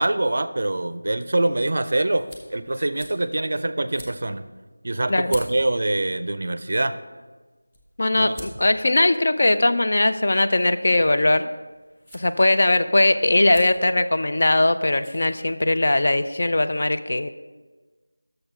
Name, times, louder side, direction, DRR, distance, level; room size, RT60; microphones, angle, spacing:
voice 1, 0.0-4.4 4.8-7.0 8.1-8.3, right 2 dB, 50° right, 12 dB, 0.4 m, -24 dB
sound 1, 2.1-16.0, equal, 10° left, 0.8 m, -48 dB
voice 2, 8.0-11.5 12.1-17.3, left 2 dB, 45° left, 9 dB, 0.4 m, -20 dB
6.5 x 6.5 x 5.6 m, 1.3 s
figure-of-eight pair, 170°, 0 cm